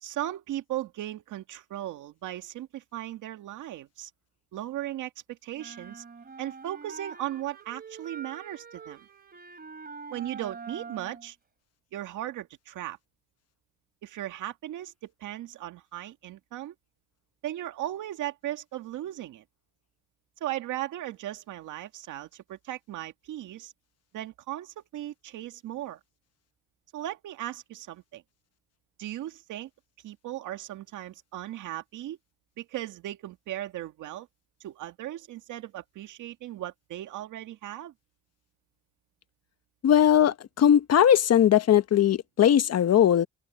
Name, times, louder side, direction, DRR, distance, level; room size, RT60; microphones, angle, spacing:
voice 1, 0.0-4.1 4.5-6.0 6.4-9.0 10.1-11.4 11.9-13.0 14.0-16.7 17.4-19.4 20.4-23.7 24.1-26.0 26.9-28.2 29.0-29.7 30.0-32.2 32.6-34.3 34.6-37.9, right 13 dB, 85° right, 2.0 m, -37 dB
sound 1, 5.6-11.3, right 5 dB, 30° right, 2.9 m, -44 dB
voice 2, 39.8-43.3, left 10 dB, 55° left, 1.1 m, -20 dB
open air
cardioid pair, 90°, 30 cm